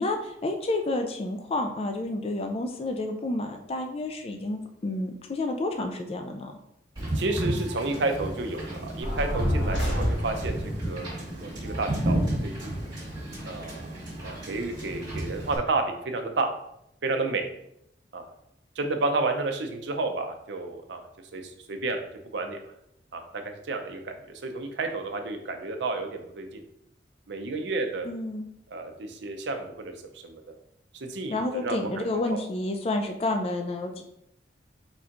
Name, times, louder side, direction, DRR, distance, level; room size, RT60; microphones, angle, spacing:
voice 1, 0.0-6.5 28.0-28.4 31.3-34.0, left 2 dB, 30° left, 4 dB, 0.3 m, -30 dB
Wind / Boat Water vehicle, 7.0-15.6, right 1 dB, 20° right, 1.6 m, -32 dB
voice 2, 7.1-12.7 13.4-16.5 17.0-17.5 18.1-18.2 18.8-21.0 21.3-22.7 23.1-26.6 27.3-28.1 28.7-29.9 30.2-30.4 30.9-32.4, right 3 dB, 70° right, 5 dB, 0.6 m, -31 dB
sound 1, 9.0-10.7, equal, 75° left, 1.5 m, -27 dB
4.4 x 4.2 x 2.5 m, 0.78 s
head